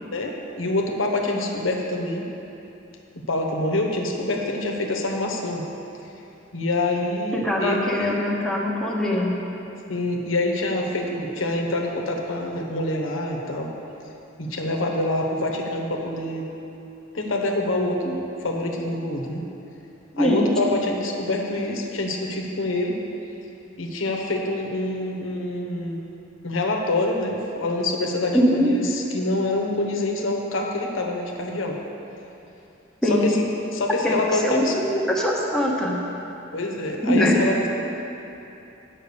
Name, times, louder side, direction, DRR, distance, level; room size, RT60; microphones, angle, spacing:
voice 1, 0.1-2.3 3.1-5.6 6.5-8.1 9.9-13.7 14.4-16.5 17.1-19.5 20.2-23.0 23.8-26.0 26.4-31.8 33.1-33.4 33.7-34.7 36.5-37.7, left 2 dB, 90° left, 1 dB, 1.0 m, -26 dB
voice 2, 7.3-9.3 20.1-20.5 28.3-28.7 33.0-33.4 34.0-34.1 34.4-35.9 37.0-37.4, equal, 5° left, -4 dB, 1.0 m, -22 dB
8.1 x 5.9 x 6.9 m, 2.9 s
head